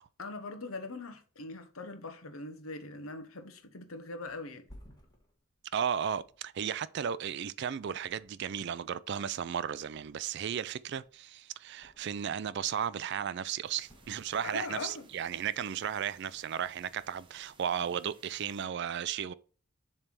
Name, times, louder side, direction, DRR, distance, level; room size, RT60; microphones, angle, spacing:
voice 1, 0.2-4.6 14.4-15.1, left 3 dB, 75° left, 1.0 m, -41 dB
Thump thud, 4.6-7.5 8.0-8.8 9.0-10.5 10.8-12.4 12.7-13.3 13.8-14.8 15.2-15.4, equal, 20° left, 1.5 m, -59 dB
voice 2, 5.7-19.3, right 8 dB, 50° right, 0.3 m, -35 dB
sound 1, 13.6-18.6, right 3 dB, 25° right, 1.0 m, -62 dB
7.2 x 3.4 x 5.9 m
head